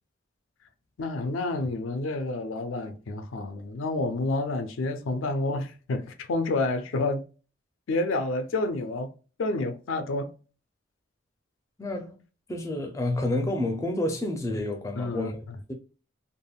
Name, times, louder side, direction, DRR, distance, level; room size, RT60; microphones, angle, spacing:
voice 1, 1.0-7.2 7.9-9.1 9.4-10.3 15.0-15.6, left 2 dB, 85° left, 0.4 m, -29 dB
voice 2, 11.8-12.2 12.5-15.3, left 1 dB, 15° left, 0.4 m, -29 dB
3.4 x 2.1 x 2.3 m
head